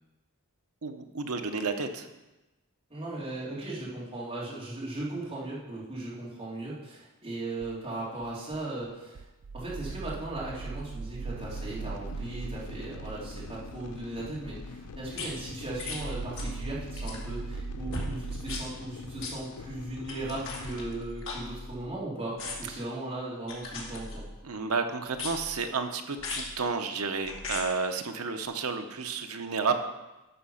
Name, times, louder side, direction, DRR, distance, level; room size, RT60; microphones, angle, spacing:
voice 1, 0.8-2.1 24.4-29.8, right 4 dB, 75° right, 6 dB, 0.9 m, -31 dB
voice 2, 2.9-9.2 9.5-24.3, right 2 dB, 25° right, -7 dB, 3.2 m, -37 dB
sound 1, 7.6-7.7 8.2-8.8 9.1-18.6, right 4 dB, 60° right, 0.4 m, -40 dB
sound 2, 11.4-21.1, left 4 dB, 85° left, 0.5 m, -44 dB
sound 3, 15.1-15.3 15.8-16.0 16.3-16.6 16.9-17.3 17.9-18.1 18.4-18.6 19.2-19.3 20.0-21.9 22.4-22.8 23.5-24.4 25.1-25.6 26.2-26.5 27.2-27.6 28.4-28.5, left 3 dB, 60° left, 2.4 m, -38 dB
11.0 x 6.4 x 5.7 m, 1.1 s
head